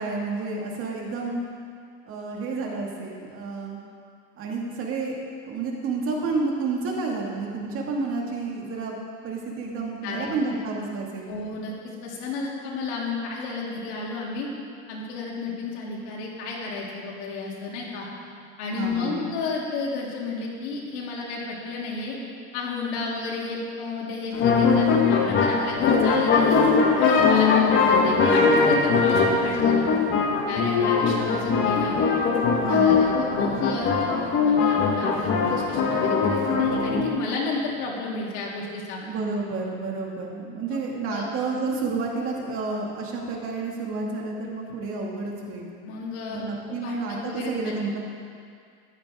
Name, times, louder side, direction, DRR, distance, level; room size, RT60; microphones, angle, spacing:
voice 1, 0.0-1.4 2.1-3.8 4.4-5.1 5.4-8.9 9.2-11.3 18.7-19.2 32.6-33.1 39.0-45.7 46.3-48.0, right 3 dB, 40° right, -1 dB, 2.1 m, -30 dB
voice 2, 10.0-10.3 11.2-14.5 14.9-18.1 18.6-22.1 22.5-26.6 27.0-29.9 30.5-32.1 32.7-39.0 40.7-40.8 41.1-41.2 45.8-46.4 46.7-47.7, left 3 dB, 85° left, -4 dB, 3.3 m, -32 dB
sound 1, 24.3-37.1, left 5 dB, 35° left, 1.5 m, -21 dB
14.5 x 12.0 x 3.7 m, 2.3 s
cardioid pair, 150°, 34 cm